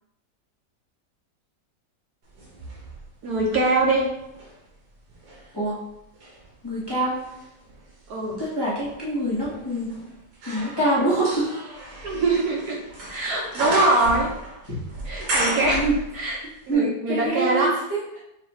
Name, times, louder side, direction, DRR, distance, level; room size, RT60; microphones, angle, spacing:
sound 1, 2.4-4.6 5.1-16.4 16.7-16.8, right 1 dB, 80° right, 1.8 m, -33 dB
voice 1, 3.2-4.1 8.1-8.4 12.0-12.8 13.1-14.3 15.1-15.8 16.1-16.4 16.7-17.7, right 2 dB, 65° right, -2 dB, 1.1 m, -23 dB
voice 2, 6.6-7.2 8.4-9.9 10.5-11.6 14.7-14.8 15.5-16.0 16.7-18.2, right 1 dB, 15° left, -9 dB, 0.9 m, -25 dB
6.0 x 2.4 x 3.0 m, 0.86 s
omnidirectional pair, 2.0 m